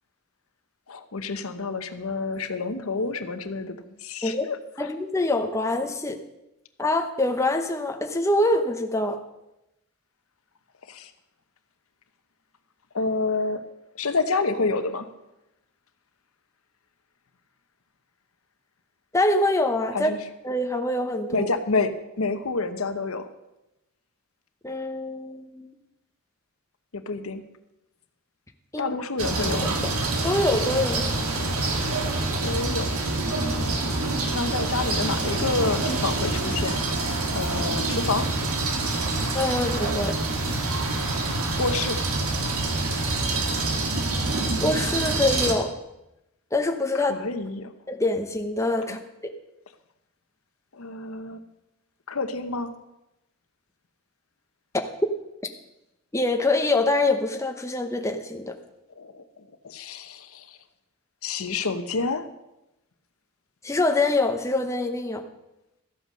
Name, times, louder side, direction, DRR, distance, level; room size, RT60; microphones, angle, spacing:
voice 1, 0.9-4.9 10.8-11.1 12.9-13.6 13.9-15.1 19.9-20.2 21.3-23.3 26.9-27.4 28.8-29.8 32.4-32.9 34.3-36.8 37.3-38.3 41.6-42.0 46.9-47.7 48.9-49.0 50.7-51.4 52.1-52.7 58.9-60.6 61.2-62.3, left 3 dB, 80° left, 10 dB, 0.9 m, -28 dB
voice 2, 4.8-6.2 6.8-9.2 19.1-20.1 20.4-21.5 24.6-25.7 28.7-28.9 30.2-31.0 39.3-40.2 44.6-45.7 46.5-47.1 47.9-49.0 56.1-58.6 63.6-65.2, left 2 dB, 15° left, 5 dB, 0.8 m, -24 dB
sound 1, 29.2-45.6, right 2 dB, 90° right, 1.9 m, -26 dB
13.5 x 8.3 x 6.4 m, 0.92 s
head